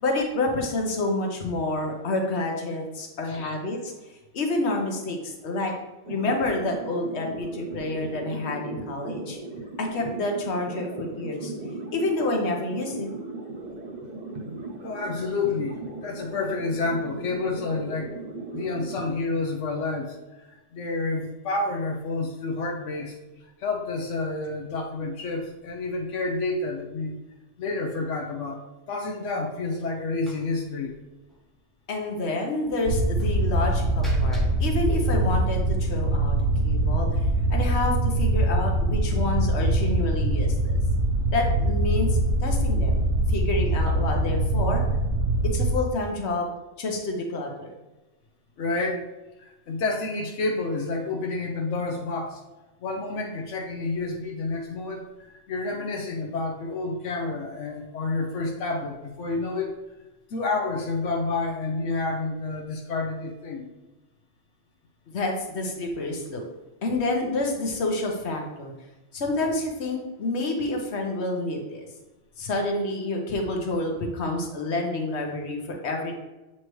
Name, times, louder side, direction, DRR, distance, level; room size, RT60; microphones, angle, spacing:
voice 1, 0.0-3.9 4.3-5.7 6.1-9.4 9.8-11.5 11.9-13.1 31.9-36.3 36.6-37.2 37.5-40.8 41.3-44.8 45.4-46.5 46.8-47.7 65.1-66.5 66.8-68.7 69.1-71.9 72.4-76.2, left 2 dB, 65° left, 2 dB, 1.3 m, -28 dB
voice 2, 3.2-3.5 14.8-18.1 18.5-23.2 23.6-27.1 27.6-28.6 28.9-30.9 48.6-49.0 49.4-52.4 52.8-59.7 60.3-63.7, left 3 dB, 85° left, 1 dB, 1.1 m, -29 dB
sound 1, 6.0-19.1, right 2 dB, 40° right, 0.9 m, -37 dB
Slam, 30.3-30.6 30.9-31.0 31.3-31.4 33.2-35.8, equal, ahead, 0.7 m, -39 dB
Space ship atmosphere, 32.9-45.7, right 1 dB, 80° right, 1.0 m, -23 dB
7.7 x 4.3 x 3.1 m, 1.1 s
omnidirectional pair, 1.2 m